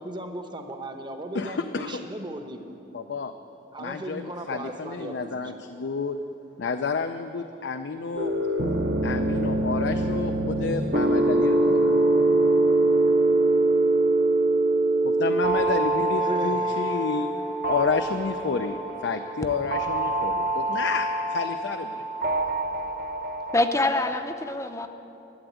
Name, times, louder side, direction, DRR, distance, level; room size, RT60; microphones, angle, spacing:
voice 1, 0.0-2.6 3.7-5.4 16.2-17.0, right 1 dB, 25° right, 5 dB, 0.9 m, -36 dB
voice 2, 1.3-2.1 2.9-3.3 3.8-6.2 6.6-8.3 9.0-11.9 15.0-22.1, left 4 dB, 65° left, 7 dB, 0.5 m, -30 dB
sound 1, 8.2-23.7, right 2 dB, 50° right, 0.9 m, -24 dB
voice 3, 23.5-24.9, left 2 dB, 15° left, 7 dB, 0.6 m, -25 dB
12.5 x 8.0 x 9.3 m, 3.0 s
head